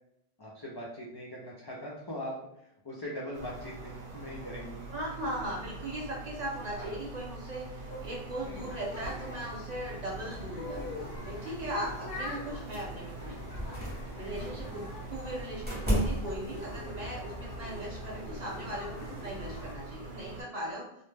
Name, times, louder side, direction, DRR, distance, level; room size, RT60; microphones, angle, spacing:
voice 1, 0.4-4.9 6.7-6.9 8.4-8.7 14.1-15.0, equal, 40° left, -5 dB, 0.3 m, -42 dB
sound 1, 3.3-20.4, right 2 dB, 85° right, 0.9 m, -44 dB
voice 2, 4.9-13.4 14.1-14.8 15.1-20.9, right 1 dB, 45° right, -4 dB, 0.8 m, -38 dB
sound 2, 7.8-19.7, left 1 dB, 70° left, 0.7 m, -44 dB
sound 3, 12.7-13.1 13.5-14.6 15.6-16.6, equal, 10° right, 0.6 m, -32 dB
2.1 x 2.0 x 3.2 m, 0.79 s
omnidirectional pair, 1.1 m